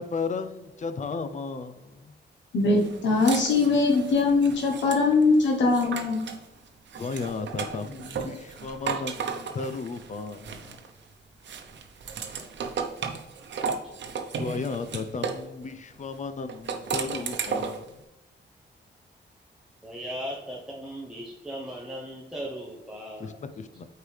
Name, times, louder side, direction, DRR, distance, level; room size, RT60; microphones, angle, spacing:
voice 1, 0.0-2.1 7.0-10.7 14.4-17.8 23.2-23.9, left 4 dB, 40° left, 10 dB, 0.6 m, -34 dB
voice 2, 2.5-6.2, left 3 dB, 85° left, -1 dB, 1.1 m, -21 dB
sound 1, 2.8-6.4 6.9-11.0 11.4-15.5 16.5-17.9, right 6 dB, 75° right, 0.9 m, -35 dB
voice 3, 19.8-23.4, equal, 5° right, -4 dB, 0.9 m, -37 dB
8.3 x 4.7 x 3.4 m, 0.96 s
wide cardioid pair, 135°, 19 cm